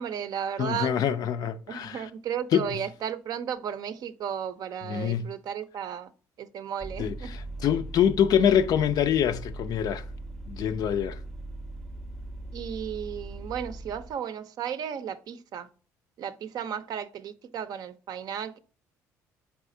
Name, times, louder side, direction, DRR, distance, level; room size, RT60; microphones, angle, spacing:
voice 1, 0.0-1.0 1.7-6.1 6.4-7.3 7.7-7.8 12.5-15.7 16.2-18.6, right 8 dB, 60° right, 0.5 m, -34 dB
voice 2, 0.6-2.1 2.5-2.7 4.8-5.3 7.0-10.0 10.5-11.2, left 9 dB, 60° left, 0.4 m, -25 dB
Vehicle, 6.8-14.2, right 2 dB, 5° left, 0.6 m, -40 dB
4.1 x 3.5 x 2.6 m
supercardioid pair, 70°, 8 cm